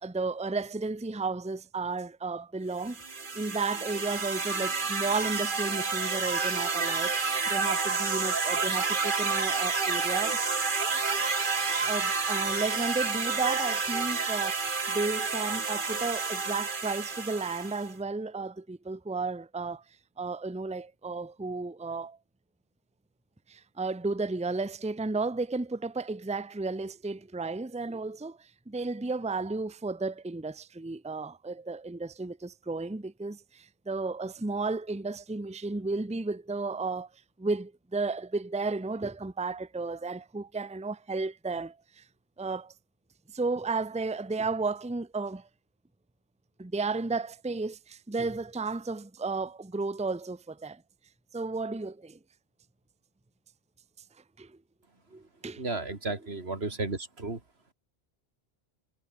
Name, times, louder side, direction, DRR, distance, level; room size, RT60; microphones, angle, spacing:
voice 1, 0.0-3.0 3.3-7.2 7.5-10.4 11.7-19.8 20.2-22.2 23.5-37.1 37.4-42.0 42.4-42.7 43.3-45.5 46.6-50.8 51.3-52.2 54.4-54.6 55.1-55.6, right 3 dB, 5° right, 0.8 m, -33 dB
sound 1, 2.8-17.9, right 4 dB, 55° right, 1.7 m, -30 dB
voice 2, 55.6-57.4, right 3 dB, 80° right, 3.2 m, -33 dB
omnidirectional pair, 1.1 m